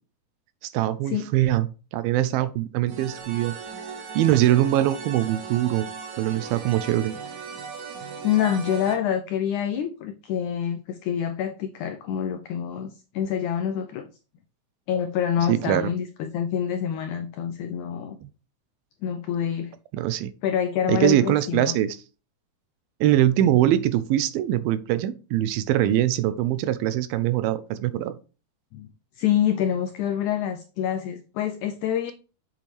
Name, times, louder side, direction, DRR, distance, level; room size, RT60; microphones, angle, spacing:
voice 1, 0.7-1.7 1.9-3.5 4.2-5.9 6.2-7.1 15.5-15.9 19.9-20.3 20.9-22.0 23.0-28.2, right 13 dB, 85° right, 2.5 m, -22 dB
sound 1, 2.9-9.0, right 5 dB, 60° right, 2.5 m, -37 dB
voice 2, 8.2-14.1 14.9-18.2 19.0-19.7 20.4-21.7 28.7-28.9 29.2-32.1, left 9 dB, 85° left, 1.7 m, -26 dB
7.6 x 7.2 x 3.3 m
omnidirectional pair, 4.2 m